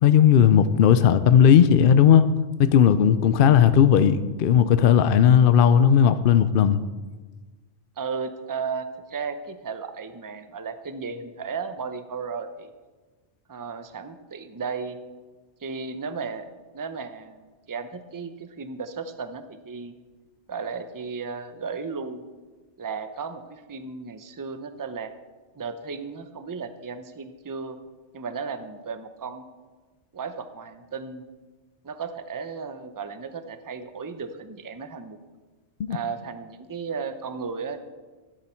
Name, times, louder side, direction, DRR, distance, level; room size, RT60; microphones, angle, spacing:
voice 1, 0.0-2.3 2.6-6.8 35.8-36.0, left 8 dB, 60° left, 13 dB, 0.7 m, -16 dB
voice 2, 8.0-12.7 13.5-15.0 15.6-19.9 20.5-22.2 22.8-25.1 25.6-27.8 28.1-29.5 30.1-31.2 31.8-35.2 35.9-37.8, right 5 dB, 25° right, 9 dB, 0.5 m, -34 dB
12.0 x 10.0 x 4.4 m, 1.3 s
omnidirectional pair, 1.2 m